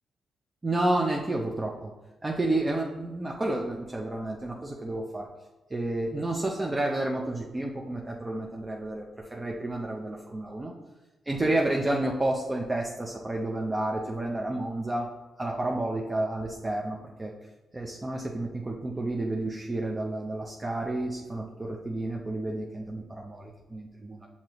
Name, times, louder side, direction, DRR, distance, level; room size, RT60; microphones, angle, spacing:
voice 1, 0.6-1.9 2.2-5.3 5.7-10.7 11.3-15.1 15.4-17.3 17.7-24.3, right 2 dB, 30° right, 0 dB, 0.6 m, -30 dB
6.1 x 2.8 x 2.9 m, 1.1 s
supercardioid pair, 45°, 0 cm